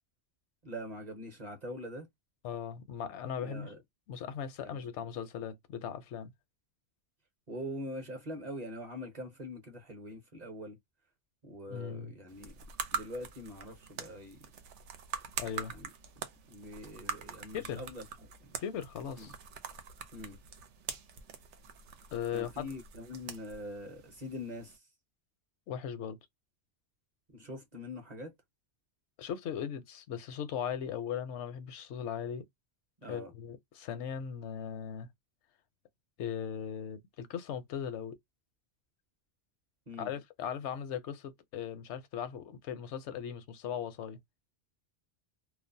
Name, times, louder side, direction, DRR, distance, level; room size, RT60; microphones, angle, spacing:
voice 1, 0.6-2.1 3.4-3.8 4.6-4.8 7.5-10.8 11.4-12.5 12.9-14.5 15.7-15.9 16.5-18.0 18.4-18.6 19.2-19.3 20.1-20.4 22.3-24.9 27.3-28.3 33.0-33.3 39.9-40.1, left 1 dB, 40° right, 0.7 m, -43 dB
voice 2, 2.4-3.7 4.1-6.3 11.7-12.1 15.4-15.7 17.5-17.8 18.6-19.3 22.1-22.7 25.7-26.2 29.2-32.5 33.1-35.1 36.2-38.2 40.0-44.2, left 8 dB, 80° left, 0.9 m, -38 dB
sound 1, 12.3-24.8, right 7 dB, 90° right, 0.9 m, -44 dB
2.4 x 2.0 x 2.6 m
omnidirectional pair, 1.2 m